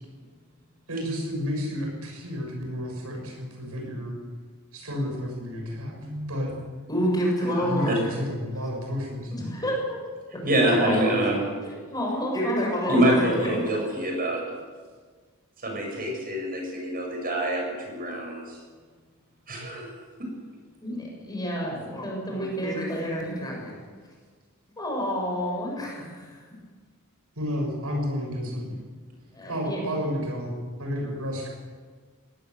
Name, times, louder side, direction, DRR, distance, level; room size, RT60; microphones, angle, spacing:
voice 1, 0.9-4.1 4.7-6.0 6.3-6.5 7.6-9.3 10.4-11.0 27.4-28.7 29.5-30.5 30.8-31.5, equal, 75° right, 1 dB, 7.2 m, -31 dB
voice 2, 5.8-6.4 7.4-8.0 10.5-11.4 12.9-14.4 15.6-18.6 19.5-19.9, right 1 dB, 40° right, 1 dB, 7.8 m, -26 dB
voice 3, 6.9-8.0 9.3-10.0 10.6-13.7 20.8-23.7 24.8-26.4 29.3-29.8, equal, 20° left, -1 dB, 7.1 m, -29 dB
21.0 x 18.5 x 8.0 m, 1.5 s
head